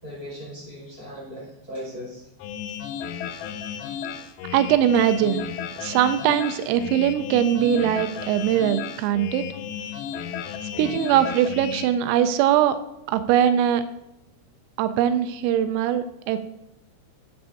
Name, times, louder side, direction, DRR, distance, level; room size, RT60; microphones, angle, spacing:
voice 1, 0.0-2.3, equal, 30° left, -5 dB, 2.6 m, -38 dB
sound 1, 2.4-11.9, left 8 dB, 90° left, 3.3 m, -34 dB
voice 2, 4.5-5.5 5.8-9.5 10.8-12.8 13.1-13.8 14.8-16.4, right 10 dB, 85° right, 10 dB, 3.2 m, -21 dB
10.5 x 9.3 x 2.6 m, 0.87 s
omnidirectional pair, 5.9 m